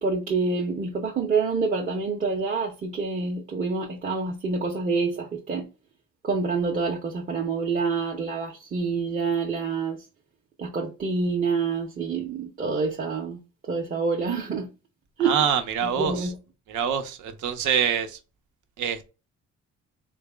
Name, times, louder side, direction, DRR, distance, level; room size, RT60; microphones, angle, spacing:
voice 1, 0.0-5.7 6.2-10.0 10.6-13.4 13.7-14.7 15.2-15.3 16.0-16.3, right 4 dB, 30° right, 0.6 m, -27 dB
voice 2, 15.2-16.3 16.7-18.2 18.8-19.1, right 8 dB, 90° right, 0.7 m, -25 dB
4.0 x 2.0 x 3.2 m
cardioid pair, 175°, 29 cm